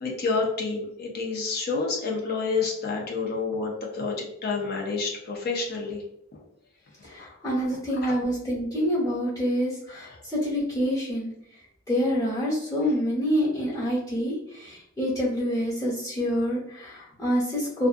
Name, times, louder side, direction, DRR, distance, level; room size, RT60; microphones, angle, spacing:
voice 1, 0.0-4.1 4.4-6.0 8.0-8.1, left 4 dB, 45° left, -1 dB, 0.6 m, -28 dB
voice 2, 7.0-11.3 11.9-17.9, equal, 15° left, -7 dB, 1.0 m, -27 dB
2.5 x 2.4 x 2.5 m, 0.73 s
head